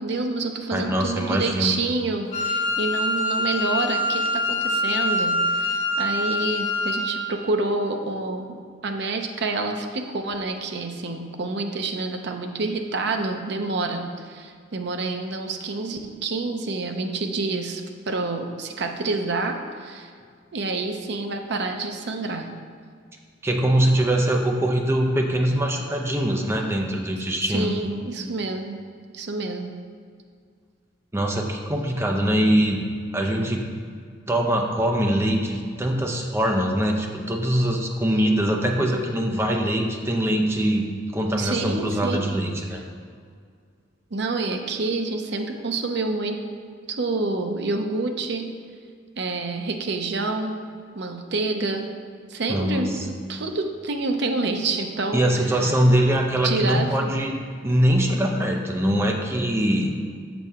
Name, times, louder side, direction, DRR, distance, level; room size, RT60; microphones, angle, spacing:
voice 1, 0.0-8.6 8.8-20.1 20.5-22.5 27.5-28.8 29.1-29.7 41.4-42.3 44.1-46.4 46.9-48.5 49.2-50.6 50.9-51.9 52.3-55.7 56.4-57.3, right 3 dB, 60° right, 4 dB, 0.6 m, -28 dB
voice 2, 0.7-1.7 23.4-27.7 31.1-32.8 33.1-33.7 34.3-42.8 52.5-53.0 55.1-57.4 57.6-60.0, right 1 dB, 15° right, 1 dB, 0.6 m, -22 dB
Wind instrument woodwind instrument, 2.3-7.2, left 1 dB, 35° left, 1.0 m, -24 dB
6.6 x 6.0 x 3.6 m, 2.1 s
head